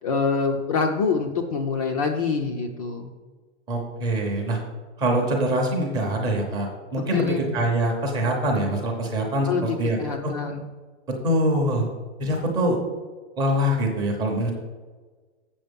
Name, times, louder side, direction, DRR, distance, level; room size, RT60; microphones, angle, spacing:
voice 1, 0.0-3.1 7.1-7.4 9.5-10.7, left 5 dB, 30° left, 3 dB, 0.6 m, -25 dB
voice 2, 3.7-4.6 5.0-10.0 10.2-10.3 11.1-11.9 12.2-12.8 13.4-14.5, right 1 dB, 10° right, 0 dB, 0.8 m, -24 dB
7.2 x 7.0 x 5.3 m, 1.4 s
hypercardioid pair, 170°, 34 cm